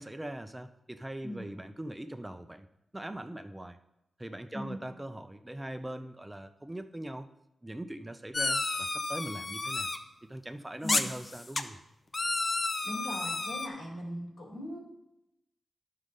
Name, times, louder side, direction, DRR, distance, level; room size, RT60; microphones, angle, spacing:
voice 1, 0.0-2.7 2.9-3.8 4.2-7.3 7.6-9.9 10.2-11.8, right 1 dB, 15° right, 8 dB, 0.5 m, -41 dB
voice 2, 1.2-1.6 4.5-4.9 10.8-11.1 12.8-14.8, left 1 dB, 75° left, -2 dB, 3.3 m, -39 dB
sound 1, 8.3-10.0 10.9-11.6 12.1-13.7, left 3 dB, 40° left, 0.6 m, -31 dB
10.5 x 6.5 x 3.8 m, 0.88 s
cardioid pair, 80°, 0 cm